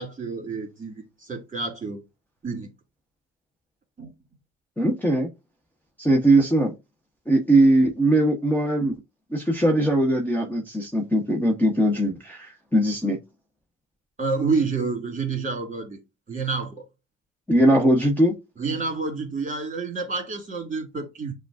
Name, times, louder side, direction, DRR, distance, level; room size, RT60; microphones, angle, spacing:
voice 1, 0.0-2.0 2.4-2.7 4.0-4.1 14.2-16.0 16.3-16.9 18.6-21.3, right 4 dB, 25° right, 2.2 m, -29 dB
voice 2, 4.8-5.3 6.0-6.7 7.3-8.9 9.3-13.2 17.5-18.3, right 1 dB, 5° left, 0.9 m, -20 dB
7.2 x 2.5 x 2.5 m
cardioid pair, 90°, 30 cm